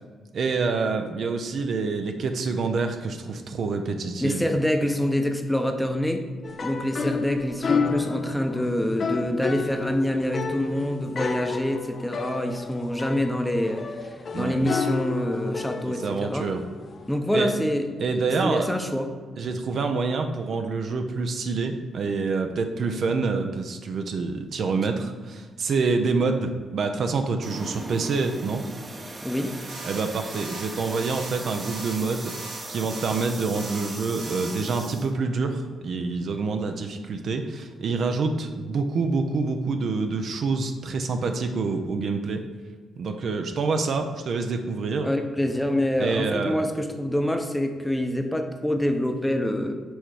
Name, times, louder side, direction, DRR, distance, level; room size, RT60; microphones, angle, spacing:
voice 1, 0.3-4.5 14.3-14.6 15.8-16.6 17.3-17.5 18.0-18.7 19.4-28.6 29.8-42.4 43.0-45.1 46.0-46.5, right 4 dB, 65° right, 6 dB, 0.5 m, -27 dB
voice 2, 4.2-6.3 6.6-16.5 17.1-17.9 18.4-19.1 29.2-29.6 45.0-49.8, left 1 dB, 5° left, 5 dB, 0.7 m, -26 dB
sound 1, 6.4-17.2, left 5 dB, 50° left, 0.5 m, -31 dB
sound 2, 27.4-35.1, right 2 dB, 35° right, 0.8 m, -38 dB
sound 3, 29.7-30.0 30.3-30.7 31.0-31.3 31.6-32.0 32.2-32.6 32.9-33.2 33.5-33.9 34.2-34.5, right 3 dB, 80° right, 1.2 m, -40 dB
6.2 x 3.2 x 4.8 m, 1.5 s
supercardioid pair, 60°, 0 cm